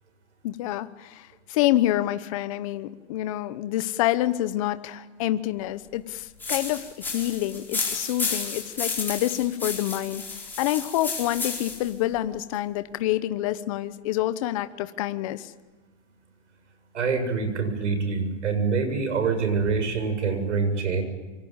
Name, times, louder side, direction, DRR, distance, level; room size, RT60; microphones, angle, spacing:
voice 1, 0.4-10.2 10.6-15.5, left 14 dB, 30° left, 12 dB, 1.0 m, -27 dB
sound 1, 6.4-11.9, left 4 dB, 5° left, 4.4 m, -32 dB
voice 2, 16.9-21.0, right 5 dB, 80° right, 8 dB, 7.3 m, -25 dB
27.5 x 24.0 x 8.9 m, 1.2 s
hypercardioid pair, 165°, 36 cm